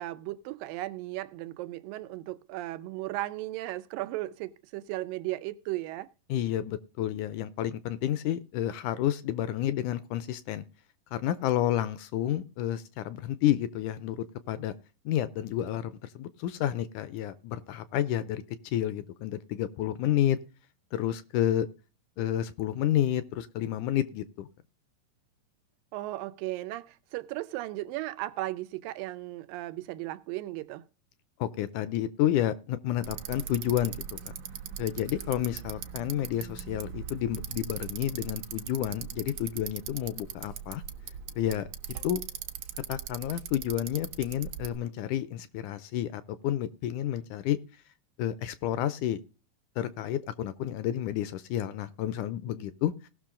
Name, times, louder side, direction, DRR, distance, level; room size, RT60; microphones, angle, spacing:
voice 1, 0.0-6.1 25.9-30.8, right 17 dB, 85° right, 2.4 m, -36 dB
voice 2, 6.3-10.6 11.1-14.7 15.1-20.4 20.9-21.7 22.2-24.5 31.4-33.9 34.3-34.4 34.8-40.8 41.4-41.7 42.0-42.2 42.9-47.6 48.2-49.2 49.8-53.1, left 12 dB, 75° left, 2.0 m, -30 dB
Bicycle, 33.0-44.8, right 9 dB, 70° right, 1.9 m, -40 dB
18.0 x 6.3 x 3.8 m
omnidirectional pair, 3.9 m